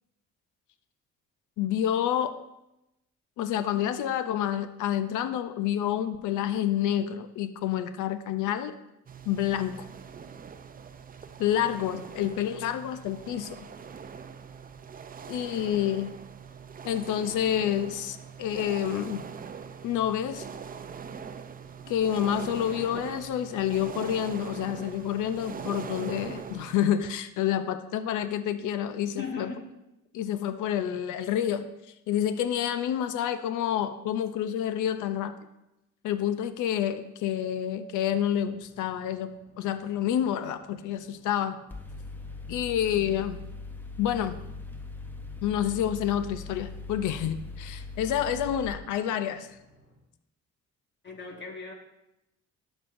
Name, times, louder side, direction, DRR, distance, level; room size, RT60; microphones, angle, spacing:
voice 1, 1.6-2.3 3.4-8.7 9.3-9.9 11.4-13.6 15.3-16.1 16.8-19.2 19.8-20.5 21.9-29.5 30.1-31.7 32.1-35.3 36.0-41.6 42.5-43.5 44.0-44.4 45.4-49.5, left 10 dB, 80° left, 11 dB, 0.6 m, -28 dB
sound 1, 9.1-26.9, right 6 dB, 30° right, 0.5 m, -42 dB
voice 2, 29.2-29.6 51.0-51.7, left 4 dB, 35° left, 1 dB, 1.7 m, -37 dB
sound 2, 38.1-49.9, equal, 55° left, 3.0 m, -59 dB
Mechanical fan, 41.7-48.7, left 3 dB, 5° left, 0.8 m, -41 dB
12.5 x 6.3 x 2.6 m, 0.90 s
cardioid pair, 90°, 30 cm